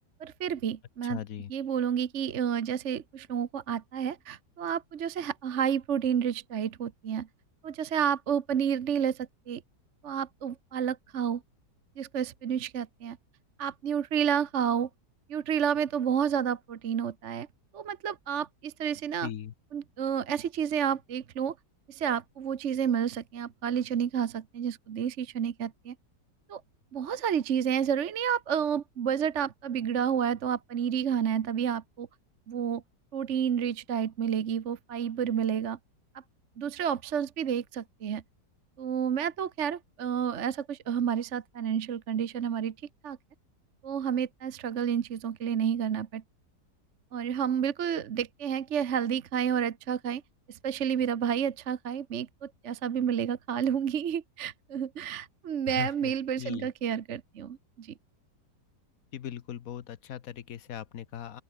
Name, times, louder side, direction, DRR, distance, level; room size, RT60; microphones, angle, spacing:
voice 1, 0.2-1.2 1.5-7.3 7.6-9.6 10.0-11.4 12.0-13.2 13.6-14.9 15.3-17.5 17.7-19.3 19.7-21.5 21.9-25.9 26.5-26.6 26.9-32.1 32.5-32.8 33.1-35.8 36.6-38.2 38.8-42.7 43.0-43.2 43.8-46.2 47.1-50.2 50.5-57.9, right 8 dB, 50° right, 1.1 m, -30 dB
voice 2, 1.1-1.5 19.2-19.5 55.7-56.7 59.1-61.4, left 10 dB, 60° left, 1.3 m, -39 dB
open air
omnidirectional pair, 1.8 m